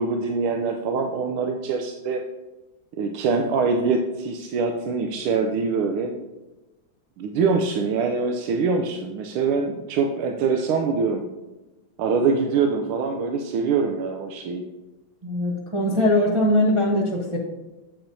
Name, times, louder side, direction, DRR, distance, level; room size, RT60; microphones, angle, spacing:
voice 1, 0.0-2.2 3.0-6.1 7.2-11.2 12.0-14.7, right 4 dB, 85° right, 4 dB, 1.5 m, -24 dB
voice 2, 15.2-17.4, left 1 dB, 30° right, -3 dB, 0.5 m, -21 dB
8.7 x 7.7 x 2.6 m, 1.1 s
omnidirectional pair, 2.3 m